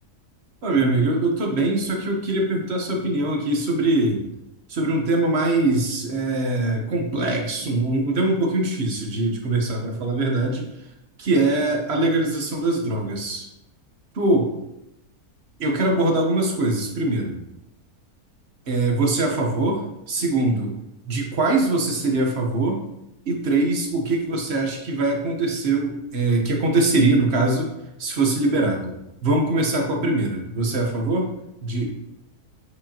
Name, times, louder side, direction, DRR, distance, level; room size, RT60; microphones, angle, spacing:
voice 1, 0.6-4.2 4.7-10.6 11.2-13.5 14.1-14.5 15.6-17.4 18.7-20.7 21.1-22.8 23.3-27.7 28.0-28.9 29.2-31.3 31.6-31.9, right 2 dB, 45° right, 1 dB, 1.3 m, -22 dB
8.2 x 5.0 x 2.9 m, 0.89 s
omnidirectional pair, 1.6 m